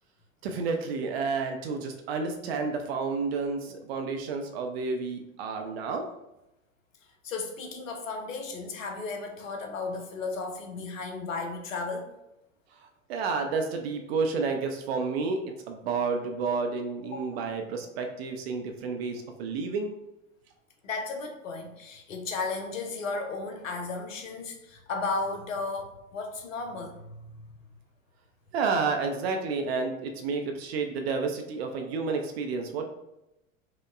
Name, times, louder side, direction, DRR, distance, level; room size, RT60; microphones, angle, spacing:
voice 1, 0.4-6.0 13.1-20.0 28.5-32.9, right 4 dB, 50° right, 4 dB, 0.5 m, -30 dB
voice 2, 7.2-12.1 17.1-17.4 20.8-27.4, left 3 dB, 70° left, 4 dB, 0.7 m, -34 dB
4.6 x 2.1 x 2.4 m, 0.90 s
figure-of-eight pair, 80°, 40 cm